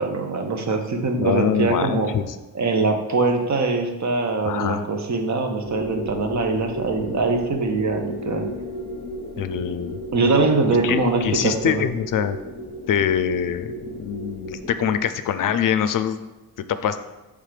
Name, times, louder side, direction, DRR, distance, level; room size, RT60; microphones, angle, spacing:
voice 1, 0.0-2.1 2.5-8.5 10.1-11.9, right 3 dB, 50° right, 4 dB, 0.9 m, -22 dB
voice 2, 1.2-2.3 4.4-4.8 9.4-10.0 10.8-12.4 12.9-16.2 16.6-17.0, left 9 dB, 60° left, 11 dB, 0.5 m, -24 dB
sound 1, 5.6-15.0, equal, 15° left, 1.2 m, -34 dB
7.3 x 3.5 x 5.0 m, 1.1 s
cardioid pair, 120°, 37 cm